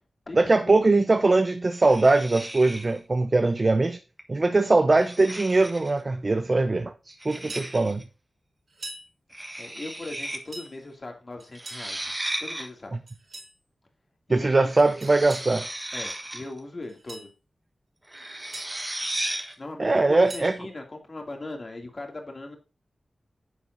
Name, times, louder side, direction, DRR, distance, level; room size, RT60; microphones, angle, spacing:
voice 1, 0.3-4.0 4.3-8.0 14.3-15.7 19.8-20.6, right 3 dB, 35° right, 0.7 m, -21 dB
sound 1, 1.7-3.0 4.2-4.4 5.0-6.0 7.2-8.0 9.3-10.4 10.7-10.8 11.5-12.7 14.6-16.6 18.1-19.5, right 1 dB, 15° right, 1.4 m, -35 dB
voice 2, 7.3-7.7 9.6-12.1 12.4-12.9 14.3-14.7 15.9-17.3 19.6-22.6, left 2 dB, 40° left, 2.5 m, -39 dB
sound 2, 7.3-7.7 8.7-9.1 10.2-10.7 11.4-11.9 13.1-13.5 15.0-15.5 16.8-17.3 18.2-18.7 20.0-20.5, right 2 dB, 60° right, 4.5 m, -42 dB
9.9 x 7.5 x 2.7 m
wide cardioid pair, 85°, 0 cm